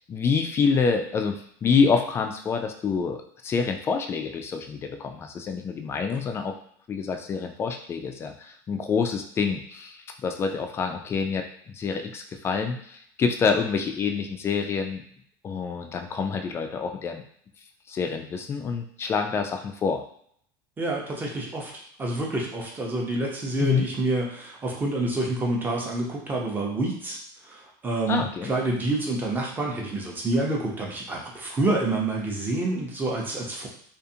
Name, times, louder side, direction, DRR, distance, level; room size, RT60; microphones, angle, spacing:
voice 1, 0.0-6.5 6.9-15.0 15.4-17.2 17.9-20.0 23.6-23.9 28.1-28.5, left 5 dB, 25° left, 5 dB, 0.3 m, -27 dB
voice 2, 20.8-27.2 27.4-33.7, right 2 dB, 15° right, -1 dB, 0.6 m, -28 dB
2.4 x 2.4 x 2.7 m, 0.65 s
supercardioid pair, 135°, 11 cm